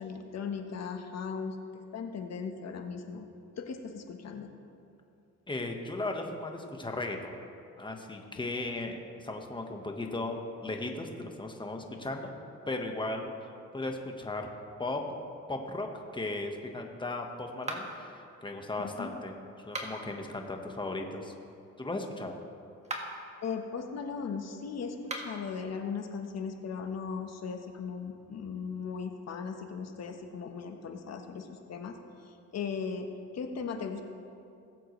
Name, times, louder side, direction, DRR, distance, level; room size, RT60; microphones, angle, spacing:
voice 1, 0.0-3.3 3.6-4.5 18.8-19.1 23.4-32.0 32.2-33.1 33.3-34.0, left 5 dB, 60° left, 5 dB, 1.2 m, -38 dB
voice 2, 5.5-7.4 7.8-12.3 12.7-14.5 14.8-15.9 16.1-18.1 18.4-19.3 19.7-21.3 21.8-22.4, left 2 dB, 15° left, 3 dB, 1.3 m, -36 dB
sound 1, 17.6-18.1 19.6-20.2 22.7-23.3 25.0-25.5, right 1 dB, 20° right, 1.5 m, -39 dB
19.0 x 7.8 x 3.2 m, 2.5 s
cardioid pair, 90°, 30 cm